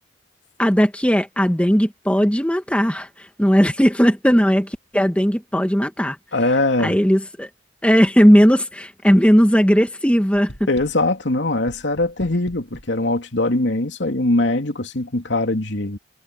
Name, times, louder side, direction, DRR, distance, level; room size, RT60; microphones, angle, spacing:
voice 1, 0.6-3.1 3.4-6.2 6.8-7.5 7.8-10.5, equal, 5° left, 1.9 m, -17 dB
voice 2, 6.3-7.0 10.7-16.0, left 2 dB, 85° left, 2.7 m, -21 dB
sound 1, 10.3-11.2 11.7-13.0, equal, 70° left, 7.8 m, -42 dB
head